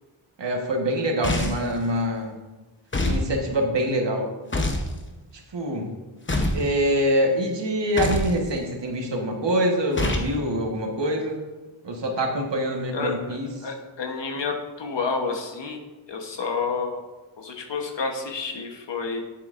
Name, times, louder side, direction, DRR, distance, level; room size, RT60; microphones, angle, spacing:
voice 1, 0.4-2.4 3.0-4.3 5.5-6.0 6.5-11.4 11.8-13.7, equal, 60° right, 1 dB, 1.4 m, -25 dB
sound 1, 1.2-1.7 2.9-3.3 4.5-4.9 6.3-6.7 8.0-8.3 10.0-10.3, left 2 dB, 25° left, 0.8 m, -24 dB
voice 2, 12.9-15.8 16.1-17.0 17.4-19.2, left 4 dB, 60° left, 3 dB, 1.1 m, -30 dB
9.6 x 7.3 x 2.5 m, 1.2 s
wide cardioid pair, 120°, 49 cm